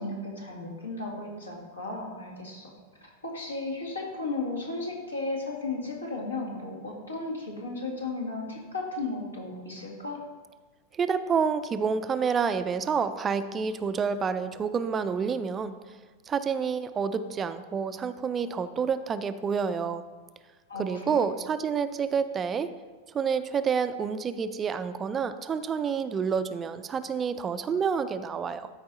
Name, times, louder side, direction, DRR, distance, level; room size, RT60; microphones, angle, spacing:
voice 1, 0.0-2.7 3.0-10.2 20.7-21.2, left 3 dB, 75° left, -1 dB, 1.9 m, -35 dB
voice 2, 10.9-15.8 16.3-20.0 20.8-22.7 23.1-28.7, right 6 dB, 20° right, 11 dB, 0.4 m, -28 dB
13.0 x 4.7 x 4.1 m, 1.4 s
figure-of-eight pair, 90°, 0 cm